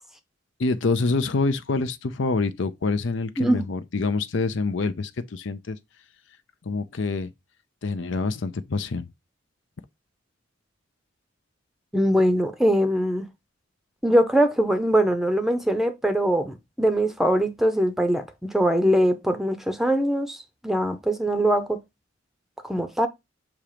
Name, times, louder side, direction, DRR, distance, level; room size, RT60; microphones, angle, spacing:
voice 1, 0.6-5.8 6.6-7.3 7.8-9.1, left 3 dB, 65° left, 0.6 m, -26 dB
voice 2, 11.9-13.3 14.0-21.8 22.6-23.1, equal, ahead, 0.7 m, -22 dB
7.1 x 3.0 x 4.9 m
head